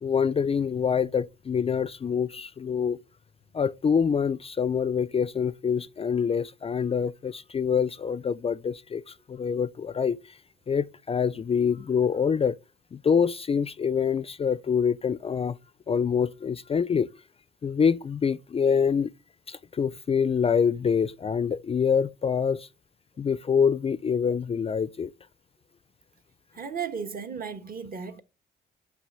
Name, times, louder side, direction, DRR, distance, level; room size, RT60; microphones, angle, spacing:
voice 1, 0.0-3.0 3.5-10.4 10.7-12.6 12.9-15.6 15.9-17.1 17.6-19.1 19.5-22.7 23.2-25.1, left 6 dB, 30° left, 0.4 m, -25 dB
voice 2, 26.5-28.2, right 6 dB, 45° right, 1.5 m, -35 dB
6.4 x 6.0 x 5.5 m
cardioid pair, 90°, 20 cm